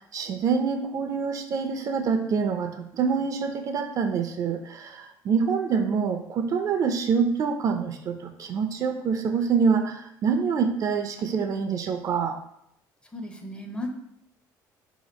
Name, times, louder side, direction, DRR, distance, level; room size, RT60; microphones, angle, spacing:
voice 1, 0.1-12.3, right 6 dB, 50° right, 6 dB, 0.4 m, -26 dB
voice 2, 13.1-13.9, left 1 dB, 15° left, 4 dB, 0.5 m, -35 dB
2.8 x 2.4 x 4.1 m, 0.75 s
cardioid pair, 100°, 8 cm